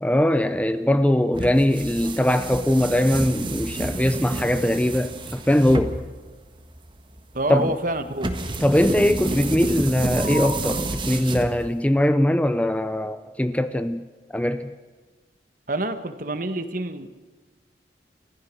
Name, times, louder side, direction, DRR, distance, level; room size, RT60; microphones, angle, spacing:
voice 1, 0.0-6.0 7.5-7.7 8.6-14.1 14.3-14.7, left 1 dB, 5° left, 11 dB, 0.6 m, -21 dB
sound 1, 1.3-11.9, right 1 dB, 25° right, 1.5 m, -30 dB
voice 2, 7.3-8.3 15.7-17.1, right 2 dB, 50° right, 9 dB, 1.5 m, -27 dB
30.0 x 14.5 x 6.4 m, 1.3 s
head